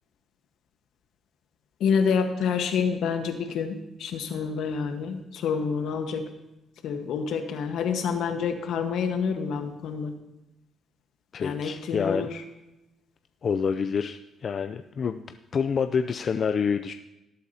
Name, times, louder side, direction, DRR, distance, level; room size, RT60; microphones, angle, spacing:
voice 1, 1.8-6.2 6.8-10.1 11.4-12.4, left 6 dB, 80° left, 6 dB, 1.3 m, -28 dB
voice 2, 11.3-12.3 13.4-15.2 15.5-16.9, left 6 dB, 50° left, 8 dB, 0.4 m, -27 dB
18.5 x 8.4 x 2.8 m, 0.95 s
cardioid pair, 90°, 0 cm